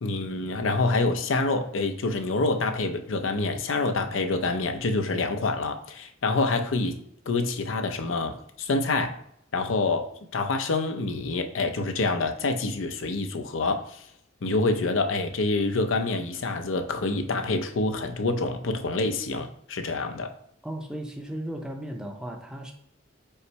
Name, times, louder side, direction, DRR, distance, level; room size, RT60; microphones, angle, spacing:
voice 1, 0.0-7.0 7.3-9.2 9.5-14.1 14.4-20.4, left 3 dB, 85° left, 0.6 m, -27 dB
voice 2, 20.6-22.7, right 1 dB, 5° right, 0.5 m, -35 dB
5.4 x 2.0 x 4.5 m
head